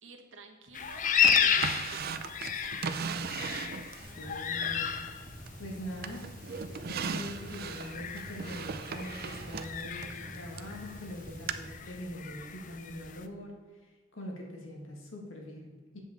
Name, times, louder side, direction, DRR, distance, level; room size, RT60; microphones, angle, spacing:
voice 1, 0.0-2.7 6.1-6.2, right 3 dB, 75° right, 3 dB, 1.3 m, -53 dB
sound 1, 0.7-13.2, left 7 dB, 40° left, 0.5 m, -33 dB
Drawer open or close, 1.2-4.1 4.6-5.7 6.0-10.7 11.5-11.6, right 6 dB, 50° right, 0.5 m, -37 dB
sound 2, 4.0-12.0, equal, 25° right, 2.0 m, -48 dB
voice 2, 4.2-5.2 5.6-13.6 14.1-16.0, equal, 85° left, 0 dB, 1.7 m, -43 dB
8.0 x 7.4 x 4.0 m, 1.4 s
head